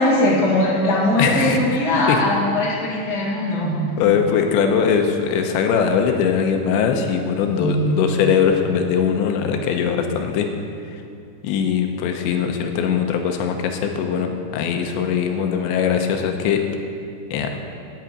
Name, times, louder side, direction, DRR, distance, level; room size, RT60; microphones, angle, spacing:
voice 1, 0.0-3.8 7.5-7.9, left 1 dB, 35° left, -5 dB, 1.7 m, -20 dB
voice 2, 1.2-1.6 2.1-2.2 4.0-10.5 10.9-11.0 11.4-16.6 17.3-17.5, left 7 dB, 80° left, 4 dB, 2.9 m, -21 dB
9.1 x 8.6 x 8.6 m, 2.4 s
omnidirectional pair, 5.5 m